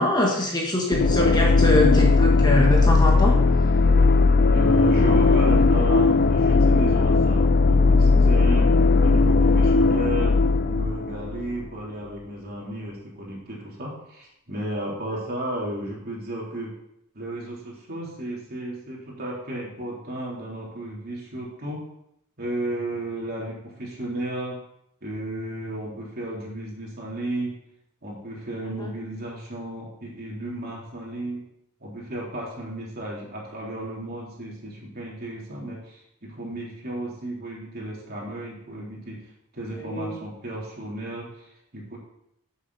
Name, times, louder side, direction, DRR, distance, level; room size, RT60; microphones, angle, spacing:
voice 1, 0.0-3.4 39.7-40.1, left 1 dB, 20° left, -1 dB, 1.7 m, -23 dB
sound 1, 0.9-11.7, left 3 dB, 45° left, 0.4 m, -18 dB
voice 2, 4.5-8.7 9.0-10.3 10.7-16.7 17.1-21.8 22.4-24.6 25.0-27.5 28.0-31.4 31.8-39.2 39.5-42.0, right 1 dB, 45° right, -4 dB, 3.5 m, -33 dB
12.5 x 7.4 x 4.2 m, 0.79 s
head